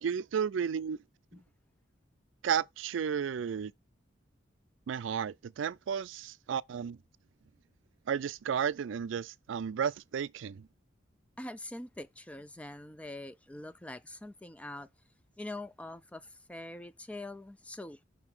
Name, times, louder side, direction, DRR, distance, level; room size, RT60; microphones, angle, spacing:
voice 1, 0.0-1.0 2.4-3.7 4.9-7.0 8.1-10.7, right 7 dB, 80° right, 0.4 m, -33 dB
voice 2, 11.4-14.9 15.4-18.0, left 1 dB, 5° left, 0.3 m, -44 dB
5.7 x 3.8 x 5.9 m
head